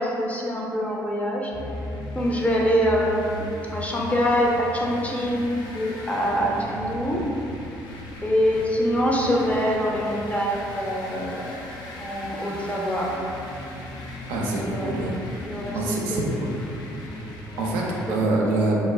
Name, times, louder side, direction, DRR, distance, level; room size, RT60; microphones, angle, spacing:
voice 1, 0.0-1.5 2.1-3.5 3.7-7.2 8.2-11.5 12.0-13.1 14.6-14.9 15.4-16.2 17.1-17.2 17.5-17.7 18.5-18.6, equal, 15° left, -3 dB, 0.5 m, -24 dB
sound 1, 1.5-18.2, left 1 dB, 70° left, 0.4 m, -37 dB
voice 2, 14.3-15.1 15.7-16.5 17.6-17.8 18.1-18.7, right 2 dB, 90° right, -3 dB, 0.4 m, -25 dB
2.3 x 2.1 x 3.2 m, 2.8 s
supercardioid pair, 70°, 8 cm